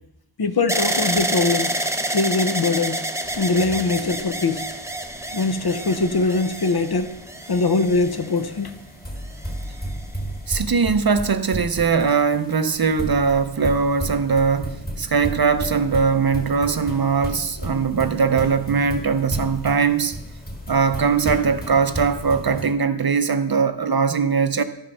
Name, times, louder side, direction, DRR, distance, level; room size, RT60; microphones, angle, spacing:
voice 1, 0.4-1.8 2.0-3.0 3.4-4.6 5.3-7.1 7.5-8.8, left 3 dB, 50° left, 0.7 m, -22 dB
sound 1, 0.7-8.7 9.4-10.1, right 1 dB, 5° right, 0.6 m, -28 dB
sound 2, 3.2-22.7, equal, 20° left, 1.7 m, -34 dB
voice 2, 10.5-20.2 20.7-24.6, right 5 dB, 45° right, 0.6 m, -20 dB
11.5 x 5.4 x 5.4 m
wide cardioid pair, 80°, 50 cm